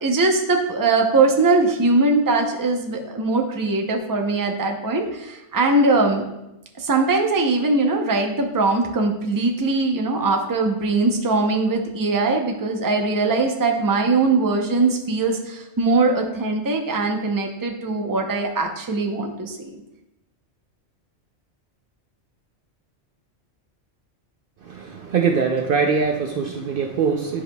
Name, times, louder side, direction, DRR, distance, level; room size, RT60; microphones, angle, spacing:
voice 1, 0.0-6.2 6.8-19.8, right 3 dB, 20° right, 3 dB, 0.6 m, -21 dB
voice 2, 24.6-27.4, right 5 dB, 60° right, 2 dB, 0.7 m, -22 dB
10.0 x 5.0 x 2.3 m, 0.89 s
omnidirectional pair, 1.2 m